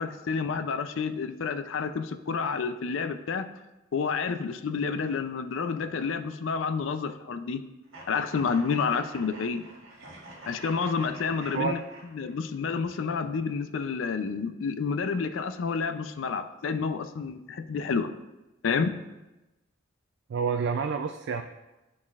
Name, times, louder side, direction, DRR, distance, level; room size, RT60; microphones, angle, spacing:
voice 1, 0.0-3.5 3.9-7.6 8.1-9.6 10.5-11.8 12.1-18.1 18.6-18.9, left 5 dB, 65° left, 10 dB, 0.4 m, -29 dB
sound 1, 7.9-12.5, right 1 dB, 85° right, 1.8 m, -46 dB
voice 2, 20.3-21.4, right 6 dB, 60° right, 6 dB, 0.4 m, -28 dB
11.0 x 4.2 x 2.4 m, 1.0 s
head